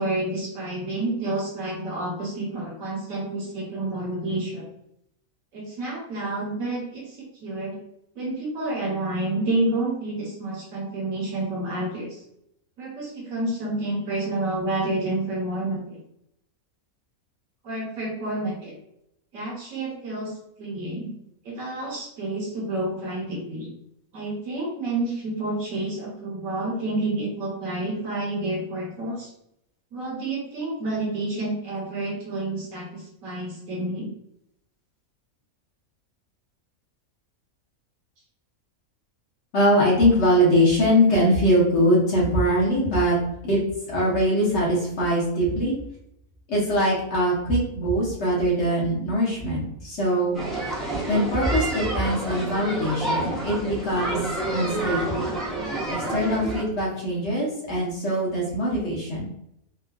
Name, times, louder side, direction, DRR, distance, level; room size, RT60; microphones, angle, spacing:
voice 1, 0.0-4.7 5.5-7.7 8.1-12.2 12.8-16.0 17.6-18.8 19.3-20.3 20.6-21.1 21.4-23.7 24.1-29.3 29.9-34.1, right 2 dB, 70° right, -3 dB, 1.4 m, -29 dB
voice 2, 39.5-43.1 43.4-43.6 43.9-45.7 46.5-50.4 51.1-54.2 54.5-55.3 55.9-59.3, equal, 55° left, -5 dB, 1.2 m, -22 dB
sound 1, 50.3-56.6, right 2 dB, ahead, 0.4 m, -29 dB
3.6 x 2.3 x 2.3 m, 0.77 s
omnidirectional pair, 1.5 m